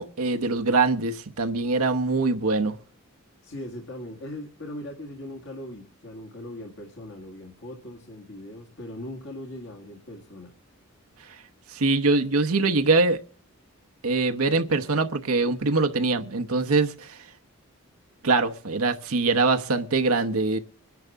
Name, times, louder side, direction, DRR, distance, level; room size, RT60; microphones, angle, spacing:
voice 1, 0.0-2.8 11.7-13.2 14.0-17.2 18.2-20.6, right 3 dB, 90° right, 0.9 m, -23 dB
voice 2, 3.4-10.5, left 1 dB, 60° left, 1.9 m, -39 dB
25.0 x 10.5 x 3.5 m
head